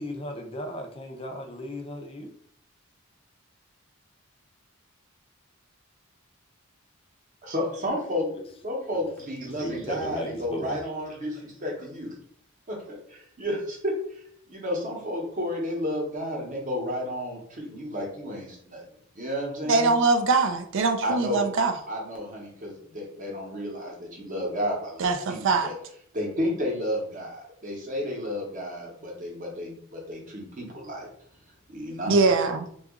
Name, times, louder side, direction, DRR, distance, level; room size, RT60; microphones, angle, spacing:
voice 1, 0.0-2.3 8.3-8.4 9.6-10.8, left 1 dB, 25° left, 0.4 m, -36 dB
voice 2, 7.4-8.3 8.6-12.1 12.7-12.8 13.1-14.0 14.5-18.8 19.1-19.9 21.0-21.5 21.9-25.8 26.1-31.1 31.7-32.1, equal, 35° right, 0.8 m, -32 dB
voice 3, 19.7-21.7 25.0-25.7 32.1-32.7, right 3 dB, 60° right, 0.4 m, -22 dB
2.8 x 2.3 x 3.6 m
head